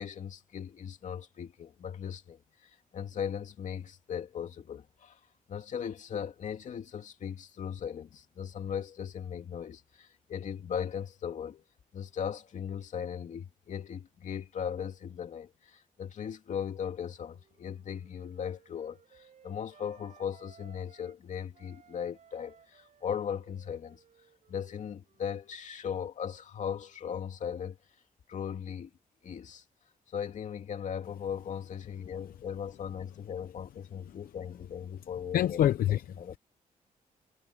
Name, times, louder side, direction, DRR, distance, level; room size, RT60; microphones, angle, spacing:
voice 1, 0.0-5.2 5.5-11.6 11.9-24.0 24.5-27.8 28.3-28.9 29.2-29.6 30.1-36.3, left 8 dB, 55° left, 2.6 m, -38 dB
Wind instrument woodwind instrument, 16.7-21.2 21.5-26.0, right 8 dB, 55° right, 7.5 m, -61 dB
voice 2, 35.3-36.4, left 11 dB, 85° left, 0.7 m, -27 dB
wide cardioid pair, 155°, 15 cm